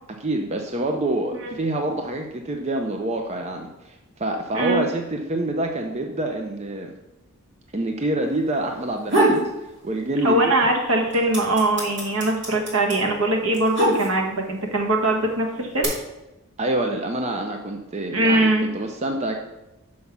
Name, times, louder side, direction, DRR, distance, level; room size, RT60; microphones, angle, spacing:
voice 1, 0.2-6.9 7.7-9.5 9.8-10.7 16.6-19.3, right 1 dB, 30° right, 3 dB, 0.6 m, -26 dB
voice 2, 4.5-4.8 10.2-15.9 18.1-18.7, right 1 dB, 70° right, 2 dB, 1.4 m, -21 dB
sound 1, 8.8-9.5 9.9-10.6 10.8-14.5 15.2-15.8, right 2 dB, 55° right, 2.6 m, -23 dB
6.4 x 5.6 x 5.9 m, 0.98 s
head